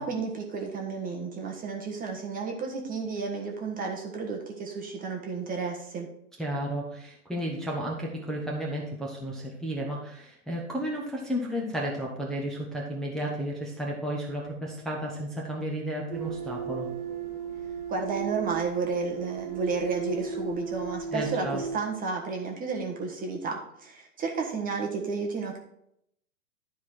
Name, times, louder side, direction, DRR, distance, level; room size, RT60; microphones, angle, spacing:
voice 1, 0.0-6.1 17.9-25.6, right 4 dB, 20° right, 1 dB, 1.3 m, -32 dB
voice 2, 6.4-16.9 21.1-21.6, equal, ahead, -4 dB, 1.2 m, -33 dB
sound 1, 16.1-21.8, right 7 dB, 85° right, 2.4 m, -35 dB
11.0 x 4.7 x 4.5 m, 0.76 s
hypercardioid pair, 130°, 44 cm